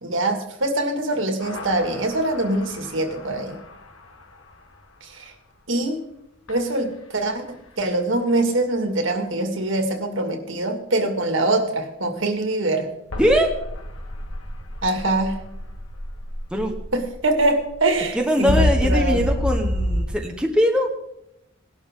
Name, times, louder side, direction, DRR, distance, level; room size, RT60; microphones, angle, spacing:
voice 1, 0.0-3.6 5.0-5.3 5.7-6.0 6.5-12.9 14.8-15.4 16.9-19.2, right 2 dB, 65° right, 5 dB, 2.2 m, -23 dB
sound 1, 1.4-4.0 6.5-6.6 13.1-20.0, left 1 dB, 85° left, 1.9 m, -28 dB
voice 2, 13.2-13.5 16.5-16.8 18.1-20.9, equal, 5° right, 2 dB, 1.2 m, -21 dB
18.5 x 11.5 x 3.8 m, 0.81 s
head